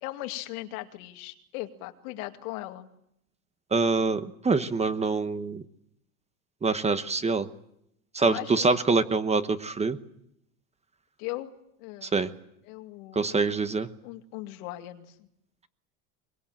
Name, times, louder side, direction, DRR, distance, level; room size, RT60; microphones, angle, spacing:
voice 1, 0.0-2.9 8.2-8.7 11.2-11.5 11.8-12.1 12.6-13.7 14.0-15.3, left 16 dB, 80° left, 6 dB, 2.4 m, -38 dB
voice 2, 3.7-5.6 6.6-7.5 8.1-10.0 12.0-12.3 13.1-13.9, right 4 dB, 15° right, 11 dB, 1.1 m, -25 dB
23.0 x 21.5 x 8.9 m, 0.77 s
supercardioid pair, 140°, 43 cm